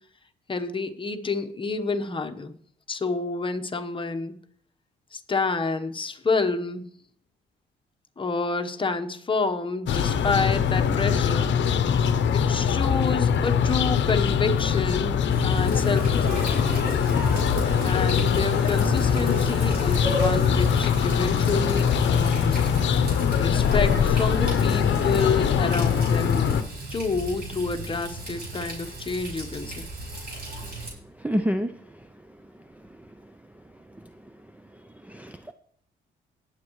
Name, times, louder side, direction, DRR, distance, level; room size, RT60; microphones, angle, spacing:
voice 1, 0.5-2.5 2.9-4.3 5.1-6.8 8.2-11.5 12.3-16.5 17.8-22.7 23.4-26.6 26.9-29.9, left 4 dB, 25° left, 6 dB, 1.1 m, -28 dB
sound 1, 9.9-26.6, left 7 dB, 65° left, 0.8 m, -22 dB
Water tap faucet, 15.3-30.9, right 1 dB, 55° right, 5.5 m, -34 dB
voice 2, 31.2-31.7 35.1-35.5, equal, 5° right, 9 dB, 0.5 m, -27 dB
19.0 x 7.5 x 3.2 m, 0.64 s
cardioid pair, 90°, 20 cm